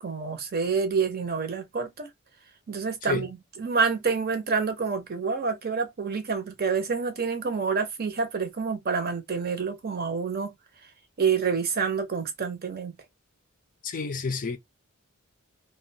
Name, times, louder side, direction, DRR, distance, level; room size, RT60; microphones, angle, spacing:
voice 1, 0.0-2.1 2.7-3.3 3.6-10.5 11.2-13.0, right 5 dB, 45° right, 0.7 m, -28 dB
voice 2, 13.8-14.6, left 4 dB, 40° left, 0.4 m, -30 dB
2.5 x 2.2 x 2.6 m
head